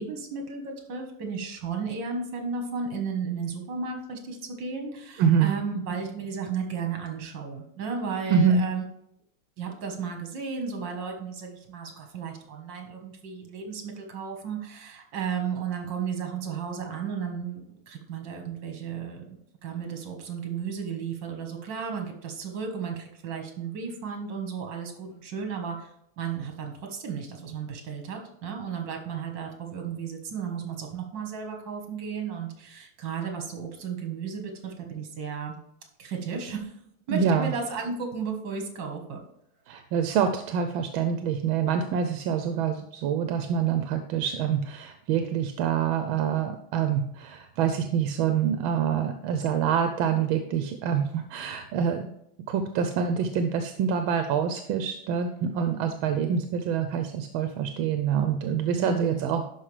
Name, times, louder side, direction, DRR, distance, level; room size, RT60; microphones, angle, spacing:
voice 1, 0.0-8.8 9.6-25.9 26.2-35.6 36.0-36.7 37.1-39.2 58.7-59.3, right 6 dB, 65° right, 3 dB, 2.0 m, -34 dB
voice 2, 5.2-5.5 8.3-8.6 37.1-37.5 39.7-52.1 52.5-59.6, right 7 dB, 85° right, 7 dB, 1.4 m, -26 dB
11.5 x 4.9 x 3.2 m, 0.75 s
omnidirectional pair, 2.2 m